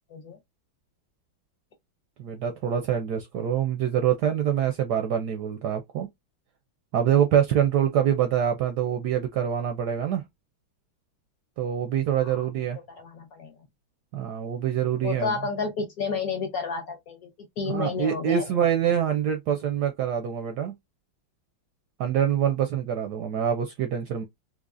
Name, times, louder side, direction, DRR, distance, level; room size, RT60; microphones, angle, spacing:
voice 1, 2.2-6.1 6.9-10.2 11.6-12.8 14.1-15.4 17.7-20.7 22.0-24.2, right 9 dB, 70° right, 1.0 m, -25 dB
voice 2, 13.0-13.5 15.0-17.3 17.6-18.6, left 5 dB, 55° left, 1.2 m, -31 dB
4.0 x 3.0 x 2.5 m
omnidirectional pair, 2.2 m